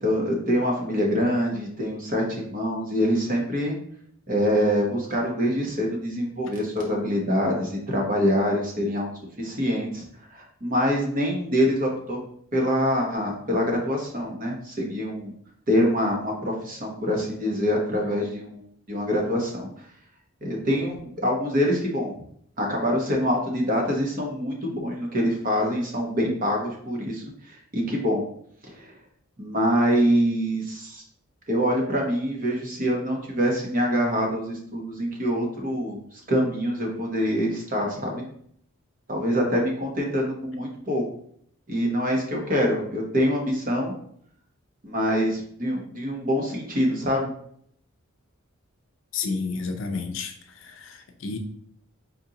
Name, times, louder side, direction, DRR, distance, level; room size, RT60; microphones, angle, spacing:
voice 1, 0.0-3.8 4.3-9.1 9.4-12.2 12.5-15.3 15.7-18.6 18.9-19.7 20.4-22.1 22.6-28.2 28.6-28.9 29.4-31.0 31.5-38.2 39.1-41.0 41.7-43.9 44.8-47.3, equal, 40° right, -1 dB, 1.1 m, -25 dB
voice 2, 49.1-51.4, left 4 dB, 65° left, 6 dB, 0.5 m, -31 dB
4.4 x 3.9 x 2.9 m, 0.65 s
head